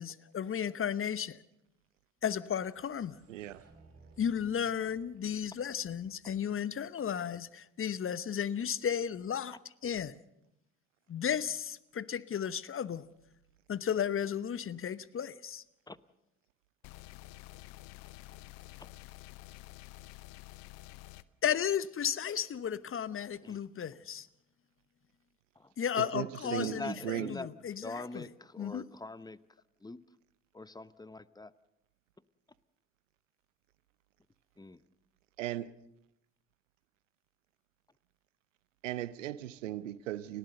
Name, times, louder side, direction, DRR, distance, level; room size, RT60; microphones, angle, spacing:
voice 1, 0.0-1.4 2.2-3.2 4.2-9.6 9.8-10.2 11.1-13.1 13.7-15.6 21.4-24.3 25.8-28.3 28.6-28.8, left 8 dB, 35° left, 1.0 m, -34 dB
sound 1, 2.2-7.1, right 3 dB, 40° right, 5.0 m, -61 dB
voice 2, 3.3-3.6 26.0-27.3 35.4-35.7 38.8-40.4, right 13 dB, 85° right, 0.8 m, -37 dB
sound 2, 16.8-21.2, left 17 dB, 70° left, 0.8 m, -50 dB
voice 3, 26.4-27.5 27.8-29.4 29.8-30.0 30.5-31.5 34.6-34.8, left 2 dB, 10° left, 0.9 m, -43 dB
30.0 x 13.5 x 6.7 m
hypercardioid pair, 50°, 37 cm